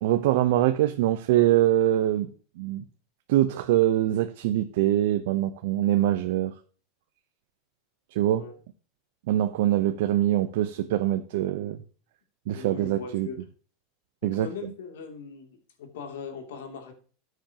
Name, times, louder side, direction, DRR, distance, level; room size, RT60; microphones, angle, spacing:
voice 1, 0.0-2.3 2.6-2.8 3.3-6.5 8.1-8.4 9.3-11.8 12.5-13.3 14.2-14.5, right 13 dB, 70° right, 0.8 m, -23 dB
voice 2, 12.5-13.4 14.2-16.9, left 5 dB, 80° left, 2.8 m, -40 dB
13.5 x 8.0 x 2.9 m
supercardioid pair, 125°, 0 cm